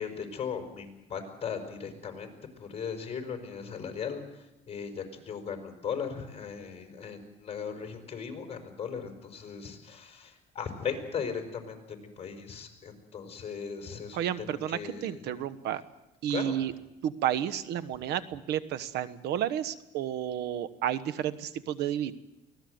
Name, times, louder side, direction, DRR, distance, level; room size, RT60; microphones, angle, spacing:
voice 1, 0.0-2.3 2.6-15.3 16.3-16.5, left 6 dB, 35° left, 4 dB, 4.8 m, -38 dB
voice 2, 14.1-15.8 16.2-16.7 17.0-22.1, right 10 dB, 80° right, 14 dB, 1.2 m, -31 dB
24.0 x 17.5 x 7.9 m, 0.94 s
cardioid pair, 110°, 17 cm